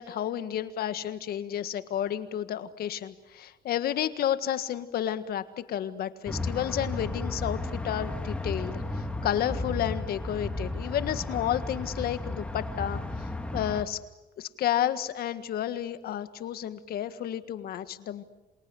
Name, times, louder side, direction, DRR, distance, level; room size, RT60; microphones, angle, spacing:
voice 1, 0.0-14.0 14.4-18.2, left 11 dB, 65° left, 11 dB, 1.7 m, -31 dB
sound 1, 6.3-13.8, left 2 dB, 5° left, 2.6 m, -34 dB
28.0 x 27.0 x 7.8 m, 1.0 s
cardioid pair, 110°, 17 cm